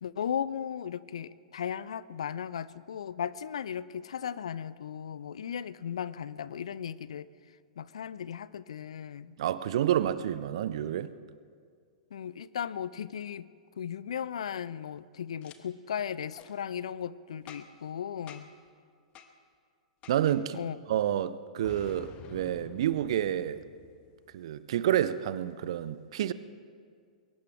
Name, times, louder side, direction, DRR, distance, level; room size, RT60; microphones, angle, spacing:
voice 1, 0.0-7.3 7.8-9.4 12.1-13.5 13.8-18.5 20.5-20.8, left 8 dB, 60° left, 18 dB, 0.5 m, -36 dB
voice 2, 9.4-11.1 20.1-20.6 20.9-23.6 24.3-26.3, right 11 dB, 50° right, 16 dB, 0.6 m, -29 dB
Boom, 15.4-15.6 16.3-16.5 17.5-17.9 18.3-18.6 19.1-19.3 20.0-20.4 21.6-24.3, left 8 dB, 30° left, 1.1 m, -50 dB
22.0 x 18.0 x 3.4 m, 2.1 s
figure-of-eight pair, 105°, 4 cm